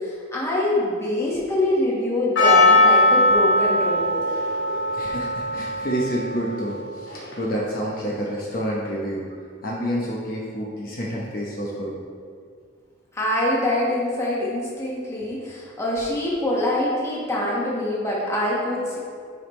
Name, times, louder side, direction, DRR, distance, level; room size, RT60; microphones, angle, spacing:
voice 1, 0.0-4.2 13.1-19.0, left 1 dB, 15° left, -6 dB, 1.4 m, -24 dB
Percussion, 2.4-7.6, left 2 dB, 65° left, 1.7 m, -20 dB
voice 2, 4.9-9.2 9.6-11.9, equal, 45° left, -4 dB, 0.9 m, -28 dB
9.1 x 5.2 x 3.2 m, 2.1 s
head